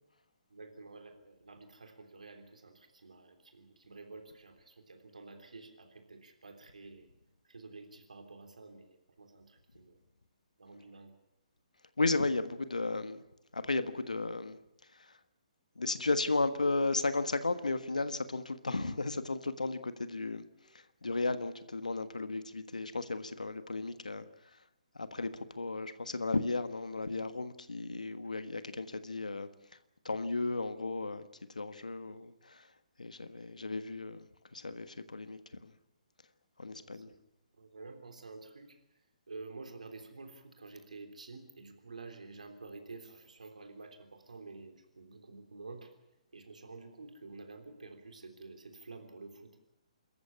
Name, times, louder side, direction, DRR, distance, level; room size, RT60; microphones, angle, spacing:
voice 1, 0.5-7.1 7.4-10.0 10.6-11.1 36.7-37.2 37.6-38.8 39.3-46.0 46.3-49.6, right 3 dB, 80° right, 3.3 m, -50 dB
voice 2, 12.0-13.2 13.5-14.6 14.9-15.2 15.7-24.2 24.5-24.6 24.9-29.5 30.0-31.2 31.5-32.7 33.0-35.7 36.6-37.1, left 3 dB, 85° left, 1.5 m, -34 dB
26.5 x 14.0 x 8.6 m
figure-of-eight pair, 135°, 4 cm